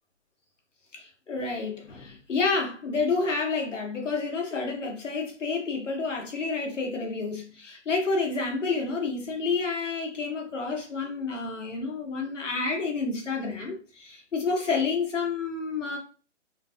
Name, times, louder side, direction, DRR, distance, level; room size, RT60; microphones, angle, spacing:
voice 1, 0.9-16.0, left 4 dB, 85° left, 1.3 m, -29 dB
3.8 x 2.3 x 2.7 m
hypercardioid pair, 170°, 36 cm